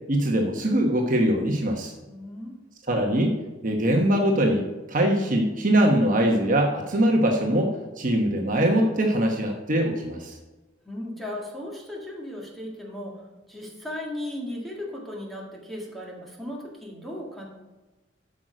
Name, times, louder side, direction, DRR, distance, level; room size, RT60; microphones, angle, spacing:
voice 1, 0.1-1.9 2.9-3.4 3.6-10.3, right 1 dB, 45° right, 2 dB, 1.0 m, -22 dB
voice 2, 2.1-2.5 10.9-13.2 13.5-17.4, left 1 dB, ahead, -3 dB, 1.8 m, -36 dB
8.4 x 6.3 x 5.0 m, 1.2 s
head